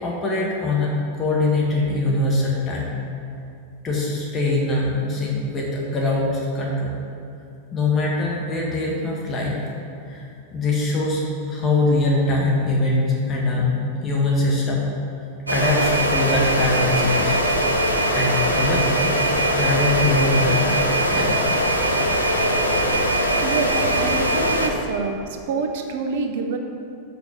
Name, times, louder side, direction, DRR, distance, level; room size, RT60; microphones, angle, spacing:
voice 1, 0.0-2.9 3.8-6.9 7.7-9.6 10.0-11.2 11.5-13.7 14.0-14.9 15.5-17.4 18.1-19.0 19.5-20.8 21.1-21.4 23.7-23.9 24.3-24.4, left 2 dB, 25° left, -3 dB, 1.5 m, -22 dB
sound 1, 15.5-24.7, right 1 dB, 85° right, 0.9 m, -21 dB
voice 2, 23.4-23.7 24.0-25.2 25.5-26.6, right 4 dB, 55° right, 4 dB, 0.7 m, -26 dB
6.9 x 5.4 x 6.7 m, 2.6 s
figure-of-eight pair, 90°, 0 cm